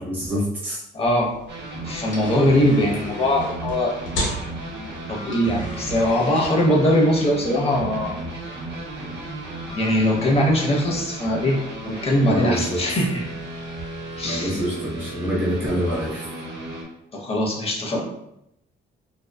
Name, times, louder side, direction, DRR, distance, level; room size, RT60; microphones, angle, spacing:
voice 1, 0.0-0.8 12.2-12.8 14.2-16.3, equal, 10° right, -6 dB, 0.7 m, -26 dB
voice 2, 0.9-1.3 1.8-3.9 5.1-8.2 9.7-13.3 14.2-14.6 17.1-18.1, left 1 dB, 30° left, -1 dB, 0.7 m, -21 dB
sound 1, 1.1-16.1, equal, 75° left, 0.9 m, -38 dB
sound 2, 1.5-16.8, right 1 dB, 55° right, 0.7 m, -35 dB
2.6 x 2.2 x 2.2 m, 0.81 s
cardioid pair, 90°, 20 cm